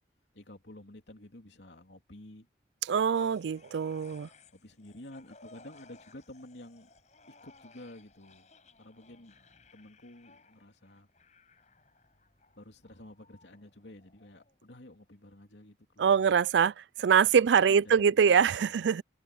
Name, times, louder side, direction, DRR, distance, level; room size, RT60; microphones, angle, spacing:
voice 1, 0.3-2.5 4.5-6.9 7.4-8.5 8.8-9.4 9.7-11.1 12.6-16.3 17.7-18.4 18.7-18.9, left 1 dB, 85° left, 3.1 m, -51 dB
voice 2, 2.9-4.3 16.0-19.0, right 7 dB, 90° right, 0.4 m, -24 dB
sound 1, 3.1-14.6 15.0-15.1, left 3 dB, 40° left, 6.9 m, -60 dB
open air
head